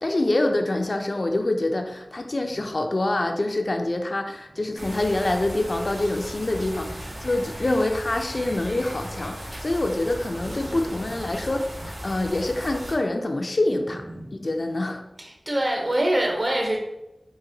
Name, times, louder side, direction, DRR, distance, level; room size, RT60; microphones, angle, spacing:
voice 1, 0.0-14.1 14.3-15.0, left 2 dB, 55° left, 5 dB, 0.3 m, -26 dB
sound 1, 4.8-12.9, equal, 85° right, 1.0 m, -37 dB
voice 2, 15.2-16.8, right 1 dB, 40° right, 0 dB, 0.8 m, -24 dB
4.0 x 2.5 x 2.6 m, 0.91 s
wide cardioid pair, 45°, 0 cm